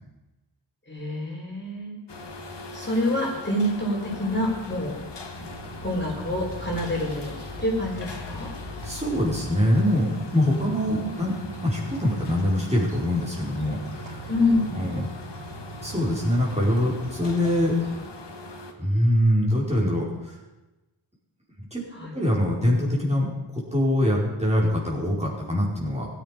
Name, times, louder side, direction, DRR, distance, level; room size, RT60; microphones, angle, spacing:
voice 1, 0.9-2.0 2.7-5.0 5.8-8.5 11.0-11.1 14.3-14.9 21.9-22.1, left 1 dB, 20° left, -3 dB, 4.4 m, -27 dB
sound 1, 2.1-18.7, left 3 dB, 55° left, 1.7 m, -41 dB
sound 2, 3.5-9.6, left 5 dB, 75° left, 1.7 m, -43 dB
sound 3, 5.3-18.1, right 3 dB, 70° right, 2.1 m, -42 dB
voice 2, 8.8-11.3 11.6-14.3 14.8-15.1 15.8-17.7 18.8-20.3 21.7-21.8 22.1-26.1, left 1 dB, 15° right, -5 dB, 4.9 m, -24 dB
15.5 x 10.5 x 5.3 m, 1.1 s
cardioid pair, 50°, 49 cm